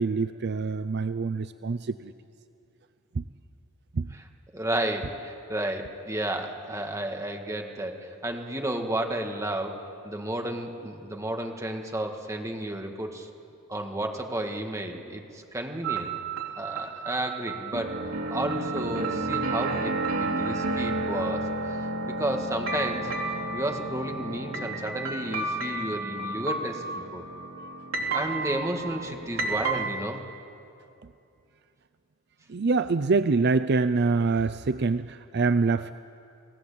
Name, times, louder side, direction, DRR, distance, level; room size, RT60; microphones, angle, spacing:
voice 1, 0.0-2.1 3.1-3.2 3.9-4.1 32.5-35.9, right 4 dB, 55° right, 12 dB, 0.5 m, -25 dB
voice 2, 4.5-9.8 10.0-13.3 13.7-16.1 16.6-18.0 18.3-19.9 20.2-23.1 23.5-26.8 27.1-27.2 28.1-30.2 34.4-34.5, right 1 dB, 15° right, 3 dB, 2.0 m, -32 dB
sound 1, 15.8-29.9, right 2 dB, 90° right, 3.2 m, -31 dB
29.5 x 17.5 x 8.6 m, 2.7 s
head